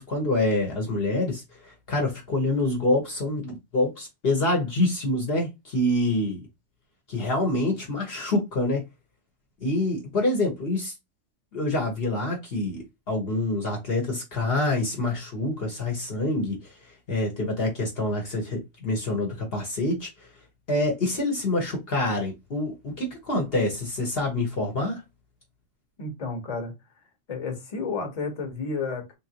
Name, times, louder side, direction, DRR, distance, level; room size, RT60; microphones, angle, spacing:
voice 1, 0.0-6.4 7.1-8.8 9.6-10.9 11.5-16.7 17.1-20.1 20.7-25.0, left 2 dB, 55° left, 1.0 m, -26 dB
voice 2, 26.0-26.7 27.3-29.1, left 4 dB, 35° left, 1.0 m, -31 dB
3.6 x 2.5 x 2.8 m
omnidirectional pair, 1.3 m